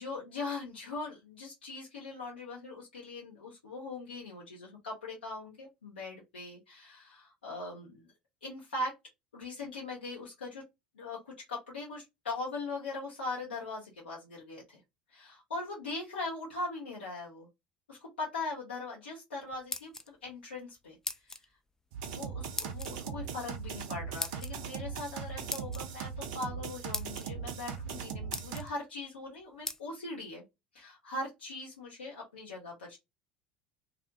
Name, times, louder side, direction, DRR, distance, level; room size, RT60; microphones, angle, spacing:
voice 1, 0.0-8.1 8.4-8.9 9.3-10.6 10.9-14.8 15.1-17.5 17.9-21.5 22.1-30.4 30.7-33.0, left 2 dB, 80° left, -3 dB, 0.6 m, -40 dB
sound 1, 19.5-20.3 21.0-21.5 22.6-22.9 24.2-24.5 25.5-25.8 26.5-26.6 26.9-27.2 27.9-28.0 28.3-28.7 29.7-29.8, left 2 dB, 10° left, 0.3 m, -38 dB
sound 2, 21.9-28.6, right 7 dB, 60° right, 0.5 m, -39 dB
2.5 x 2.1 x 2.6 m, 0.22 s
figure-of-eight pair, 70°, 5 cm